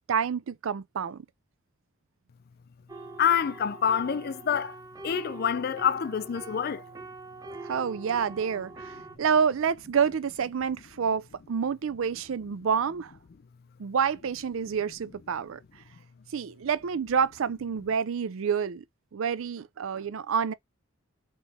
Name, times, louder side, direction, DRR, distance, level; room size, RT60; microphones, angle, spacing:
voice 1, 0.1-1.2 7.6-13.1 13.8-15.6 16.3-18.8 19.1-20.5, right 6 dB, 70° right, 0.4 m, -28 dB
sound 1, 2.9-9.2, right 3 dB, 15° right, 0.6 m, -43 dB
voice 2, 3.2-4.8 5.0-6.8, left 8 dB, 50° left, 0.4 m, -27 dB
4.1 x 3.1 x 3.4 m
head